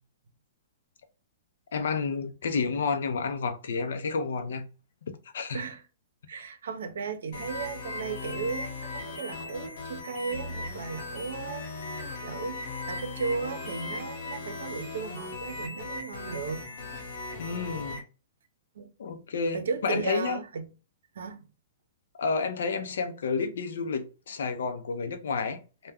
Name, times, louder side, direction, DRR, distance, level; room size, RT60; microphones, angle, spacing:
voice 1, 1.7-4.7 5.3-5.6 17.4-18.0 19.0-20.4 22.2-25.9, left 5 dB, 75° left, 0.5 m, -30 dB
voice 2, 6.3-16.7 18.8-18.9 19.5-20.7 21.1-21.4, right 5 dB, 80° right, 0.6 m, -35 dB
sound 1, 7.3-18.0, left 3 dB, 60° left, 1.0 m, -38 dB
2.2 x 2.2 x 3.4 m
hypercardioid pair, 140°, 0 cm